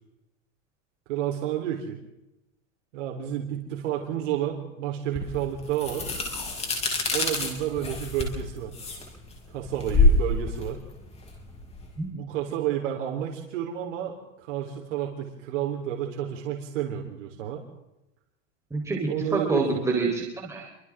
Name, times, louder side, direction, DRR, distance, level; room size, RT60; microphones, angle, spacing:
voice 1, 1.1-2.0 2.9-6.2 7.1-8.7 9.5-10.8 12.1-17.6 19.1-19.8, right 10 dB, 65° right, 1 dB, 3.9 m, -30 dB
sound 1, 5.2-11.9, left 2 dB, 15° left, 5.3 m, -26 dB
voice 2, 18.7-20.7, right 3 dB, 5° right, -2 dB, 4.2 m, -27 dB
29.0 x 25.0 x 3.7 m, 0.91 s
supercardioid pair, 155°, 39 cm